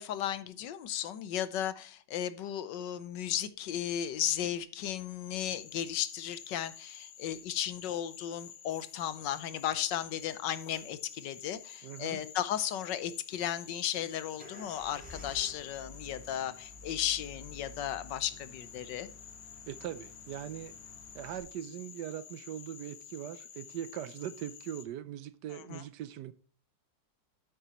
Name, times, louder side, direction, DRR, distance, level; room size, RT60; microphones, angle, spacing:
voice 1, 0.0-19.1 25.5-25.8, left 10 dB, 75° left, 1.4 m, -35 dB
Frog, 5.4-24.9, left 8 dB, 55° left, 0.8 m, -51 dB
voice 2, 11.8-12.2 19.7-20.8 21.1-26.3, right 11 dB, 70° right, 1.1 m, -41 dB
sound 1, 14.4-21.4, left 1 dB, 5° right, 3.9 m, -52 dB
9.1 x 8.5 x 2.9 m
omnidirectional pair, 2.0 m